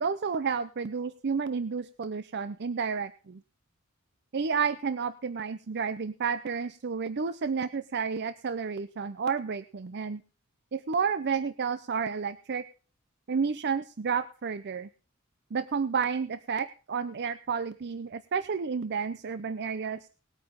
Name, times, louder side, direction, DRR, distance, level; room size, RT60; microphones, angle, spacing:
voice 1, 0.0-3.4 4.3-10.2 10.7-12.6 13.3-14.9 15.5-20.1, right 5 dB, 55° right, 13 dB, 0.6 m, -31 dB
19.5 x 8.7 x 3.7 m, 0.36 s
head